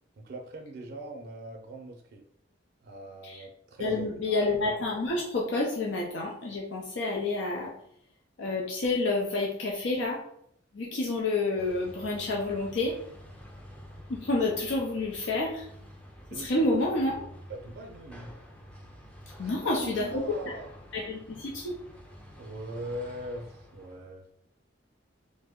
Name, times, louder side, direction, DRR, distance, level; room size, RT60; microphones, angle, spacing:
voice 1, 0.2-2.2 2.8-4.4 16.3-16.7 17.5-18.3 19.4-20.7 22.3-24.3, right 1 dB, 60° right, 2 dB, 0.5 m, -41 dB
voice 2, 3.8-7.7 8.4-10.2 10.7-13.0 14.1-15.7 16.3-17.3 19.4-20.3 20.9-21.7, left 2 dB, 80° left, -2 dB, 0.5 m, -29 dB
sound 1, 11.6-24.1, equal, 5° left, 0.4 m, -49 dB
3.3 x 2.1 x 3.5 m, 0.70 s
head